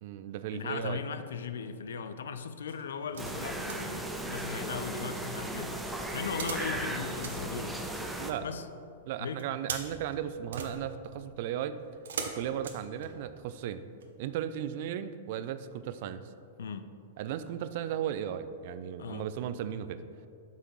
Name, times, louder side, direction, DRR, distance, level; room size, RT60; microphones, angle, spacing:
voice 1, 0.0-1.0 8.2-8.5 9.1-11.8 12.2-13.8 14.2-16.2 17.2-20.0, right 10 dB, 55° right, 12 dB, 0.3 m, -36 dB
voice 2, 0.5-5.7 6.1-7.8 8.4-8.6 9.2-9.5 16.6-16.9 19.0-19.3, left 6 dB, 75° left, 11 dB, 0.4 m, -38 dB
sound 1, 1.3-1.8 2.7-3.9 6.2-8.3 9.4-13.5 14.0-14.1, right 5 dB, 75° right, 0.8 m, -42 dB
sound 2, 3.2-8.3, right 1 dB, 5° right, 0.6 m, -36 dB
8.0 x 5.6 x 3.1 m, 2.4 s
hypercardioid pair, 115°, 0 cm